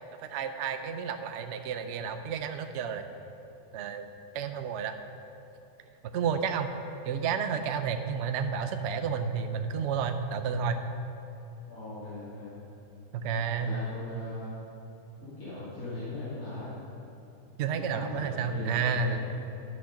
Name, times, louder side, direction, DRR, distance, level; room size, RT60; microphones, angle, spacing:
voice 1, 0.2-3.0 3.7-4.1 4.3-4.9 6.1-6.7 7.0-10.8 13.1-13.7 17.6-19.2, right 6 dB, 60° right, 7 dB, 0.8 m, -31 dB
voice 2, 11.7-12.5 13.6-14.6 15.2-16.8 17.7-19.2, left 2 dB, 75° left, -12 dB, 2.9 m, -39 dB
11.5 x 6.3 x 5.7 m, 2.9 s
omnidirectional pair, 1.5 m